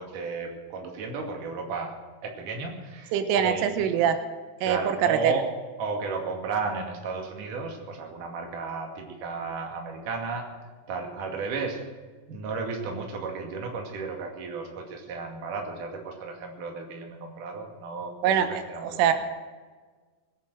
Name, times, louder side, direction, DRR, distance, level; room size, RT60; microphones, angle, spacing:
voice 1, 0.0-1.9 2.2-3.7 4.6-5.5 5.8-10.5 10.9-11.8 12.3-19.1, right 4 dB, 50° right, 2 dB, 3.4 m, -34 dB
voice 2, 3.1-4.2 4.6-5.3 18.2-19.1, right 8 dB, 90° right, 8 dB, 3.6 m, -24 dB
20.0 x 10.5 x 6.3 m, 1.4 s
omnidirectional pair, 5.5 m